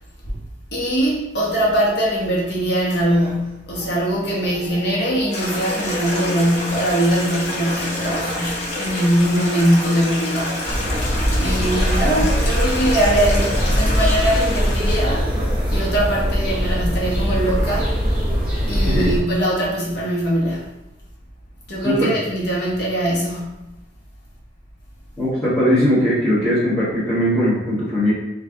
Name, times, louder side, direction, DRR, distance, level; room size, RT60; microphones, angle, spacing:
voice 1, 0.7-11.0 11.4-15.4 15.7-18.1 18.7-20.7 21.7-23.5, right 1 dB, 70° left, -6 dB, 1.1 m, -21 dB
sound 1, 3.1-3.3 3.7-11.2 11.6-15.8, equal, 30° right, 1.1 m, -35 dB
Stream, 5.3-15.0, left 1 dB, 40° left, 1.0 m, -28 dB
sound 2, 10.7-19.2, equal, 10° right, 1.3 m, -21 dB
voice 2, 25.2-28.1, equal, 10° left, -12 dB, 1.2 m, -19 dB
4.4 x 2.6 x 3.5 m, 0.98 s
head